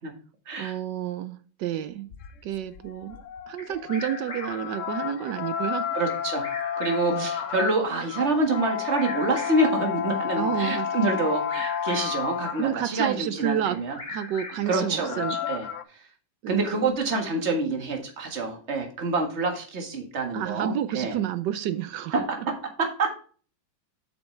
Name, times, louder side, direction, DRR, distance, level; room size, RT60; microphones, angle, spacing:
voice 1, 0.6-2.1 2.4-3.2 3.5-5.9 7.1-7.3 10.4-10.9 12.6-13.8 14.1-15.4 16.4-16.9 20.3-22.2, right 10 dB, 70° right, 1.1 m, -30 dB
sound 1, 2.1-13.0 14.5-15.8, left 8 dB, 80° left, 0.6 m, -32 dB
Bird vocalization bird call bird song, 3.6-4.7 6.1-7.2 8.6-9.8 11.2-12.3 13.6-14.8, left 2 dB, 30° left, 1.3 m, -40 dB
voice 2, 5.9-6.5 6.8-14.0 14.7-15.7 16.5-21.2 22.1-23.2, right 3 dB, 35° right, 1.9 m, -27 dB
8.0 x 6.3 x 3.2 m
omnidirectional pair, 2.2 m